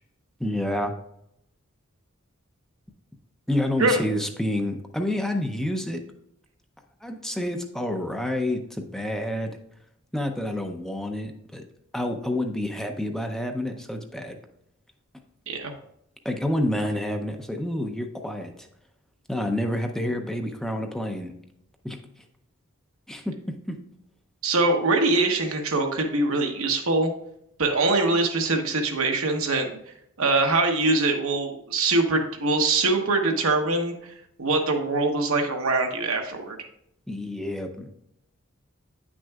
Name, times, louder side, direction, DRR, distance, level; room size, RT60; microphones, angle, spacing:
voice 1, 0.4-0.9 3.5-6.0 7.0-9.6 10.1-11.6 11.9-14.4 16.2-18.7 19.3-21.3 21.8-22.0 23.1-23.4 23.7-23.8 37.1-37.9, left 1 dB, ahead, 4 dB, 0.5 m, -28 dB
voice 2, 24.4-27.1 27.6-29.7 30.2-34.1 34.4-36.6, right 2 dB, 80° right, 3 dB, 1.1 m, -23 dB
9.1 x 6.1 x 2.3 m, 0.75 s
head